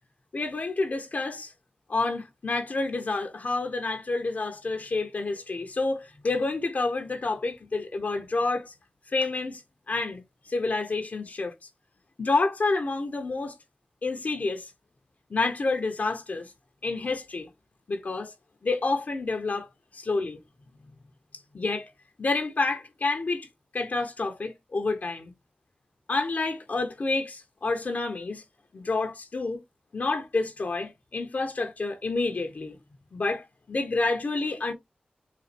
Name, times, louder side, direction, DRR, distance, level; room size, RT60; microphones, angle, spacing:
voice 1, 0.3-1.5 1.9-8.7 9.1-9.6 9.9-10.2 10.5-11.5 12.2-13.5 14.0-14.7 15.3-16.5 16.8-17.5 17.9-18.3 18.6-19.7 19.9-20.4 20.9-21.0 21.5-21.9 22.2-23.5 23.7-25.3 26.1-28.4 28.7-29.6 29.9-32.8 33.1-34.7, left 3 dB, 60° left, 0.9 m, -29 dB
4.2 x 2.5 x 4.3 m
cardioid pair, 50°, 3 cm